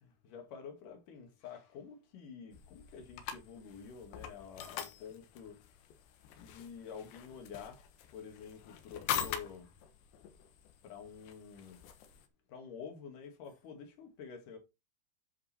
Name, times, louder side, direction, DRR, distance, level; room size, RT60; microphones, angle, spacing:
voice 1, 0.0-5.6 6.4-7.8 8.1-9.7 10.8-11.8 12.5-14.6, left 6 dB, 60° left, 3.0 m, -48 dB
sound 1, 2.5-12.3, left 9 dB, 90° left, 3.4 m, -44 dB
10.0 x 5.3 x 4.2 m
omnidirectional pair, 4.9 m